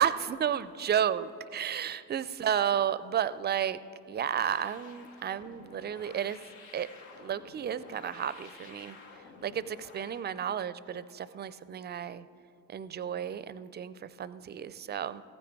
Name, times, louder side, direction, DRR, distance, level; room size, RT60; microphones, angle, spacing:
voice 1, 0.0-3.8 4.1-6.4 6.7-6.9 7.2-9.0 9.4-12.3 12.7-15.2, right 9 dB, 25° right, 16 dB, 0.4 m, -32 dB
sound 1, 4.2-10.3, left 4 dB, 80° left, 1.2 m, -52 dB
15.0 x 9.2 x 4.7 m, 2.6 s
hypercardioid pair, 60°, 41 cm